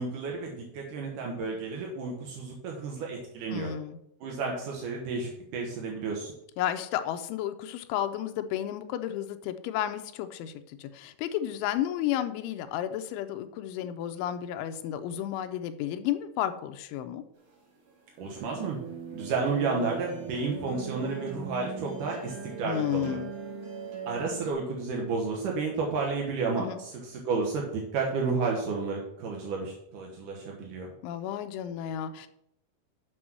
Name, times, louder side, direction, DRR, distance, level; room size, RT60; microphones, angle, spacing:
voice 1, 0.0-3.7 4.2-6.3 18.2-18.8 19.1-23.2 24.1-30.9, right 4 dB, 75° right, -1 dB, 1.9 m, -31 dB
voice 2, 3.5-4.0 6.6-17.2 22.6-23.3 26.6-26.8 31.0-32.3, left 11 dB, 90° left, 8 dB, 3.1 m, -32 dB
sound 1, 17.4-24.5, right 5 dB, 60° right, 4.8 m, -40 dB
7.8 x 6.2 x 6.1 m, 0.78 s
omnidirectional pair, 5.4 m